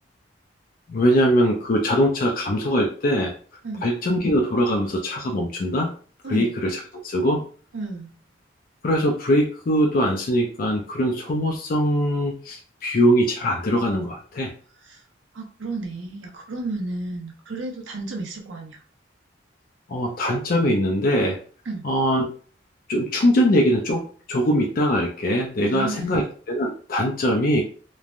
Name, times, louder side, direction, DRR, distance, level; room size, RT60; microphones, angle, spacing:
voice 1, 0.9-3.3 3.8-5.9 6.3-7.4 8.8-14.5 19.9-21.4 21.8-22.3 22.9-27.6, equal, 50° left, 1 dB, 0.4 m, -22 dB
voice 2, 7.7-8.1 14.8-15.0 15.3-18.8 21.7-21.8 25.6-26.2, right 3 dB, 90° right, 2 dB, 0.7 m, -32 dB
3.1 x 2.1 x 2.5 m, 0.41 s
head